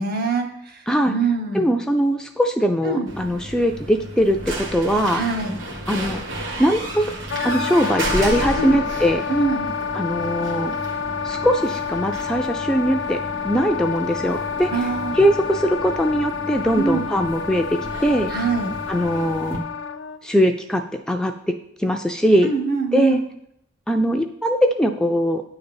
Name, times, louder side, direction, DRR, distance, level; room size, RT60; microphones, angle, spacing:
voice 1, 0.0-1.7 2.8-3.1 5.1-5.6 8.6-8.8 9.3-9.7 14.7-15.2 16.7-17.1 18.3-18.7 22.4-23.2, right 4 dB, 50° right, 4 dB, 1.3 m, -24 dB
voice 2, 1.5-5.2 5.9-6.2 6.6-7.1 7.4-9.2 9.9-10.8 11.2-14.9 15.1-18.3 18.9-19.6 20.2-21.5 21.8-22.5 22.9-23.2 23.9-25.4, equal, 5° left, 5 dB, 0.3 m, -21 dB
sound 1, 3.0-19.6, right 1 dB, 70° right, 1.8 m, -33 dB
Wind instrument woodwind instrument, 7.3-20.2, left 6 dB, 65° left, 0.5 m, -29 dB
9.6 x 3.9 x 6.9 m, 0.77 s
head